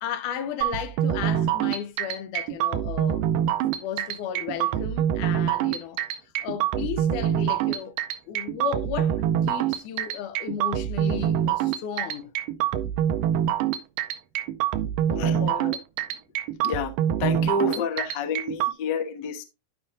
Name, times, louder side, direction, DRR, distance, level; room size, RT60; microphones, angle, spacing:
voice 1, 0.0-3.2 3.8-6.0 6.4-8.0 8.3-12.3 15.1-15.8, left 8 dB, 80° left, 2.1 m, -34 dB
sound 1, 0.6-18.7, right 10 dB, 90° right, 2.3 m, -25 dB
voice 2, 17.2-19.4, left 4 dB, 60° left, 1.1 m, -28 dB
13.0 x 5.1 x 2.5 m
omnidirectional pair, 3.8 m